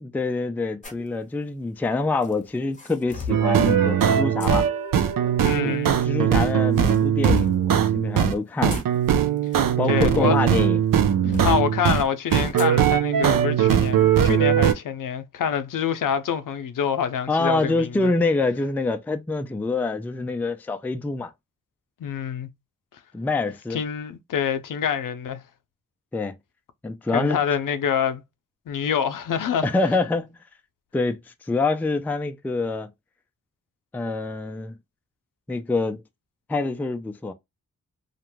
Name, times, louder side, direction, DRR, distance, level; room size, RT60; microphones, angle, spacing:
voice 1, 0.0-4.6 5.6-5.8 6.0-8.8 9.8-10.8 11.2-11.5 17.3-21.3 23.1-23.8 26.1-26.4 26.8-27.4 29.6-30.4 30.9-31.2 31.5-32.9 33.9-34.7 35.5-36.0 36.5-37.3, left 3 dB, 5° left, 0.3 m, -26 dB
sound 1, 0.8-1.1 2.2-3.5 4.4-4.5 5.7-6.3 6.7-7.6 8.4-10.5 10.9-11.6 12.6-12.8 13.2-13.3 13.9-14.1, left 5 dB, 20° left, 0.9 m, -33 dB
sound 2, 3.3-8.4 8.6-12.0 12.3-14.7, right 9 dB, 75° right, 0.5 m, -20 dB
voice 2, 5.4-5.9 9.9-10.4 11.3-18.1 22.0-22.5 23.7-25.4 27.1-28.2 28.7-29.7, left 8 dB, 70° left, 0.5 m, -26 dB
2.4 x 2.2 x 2.9 m
wide cardioid pair, 85°, 33 cm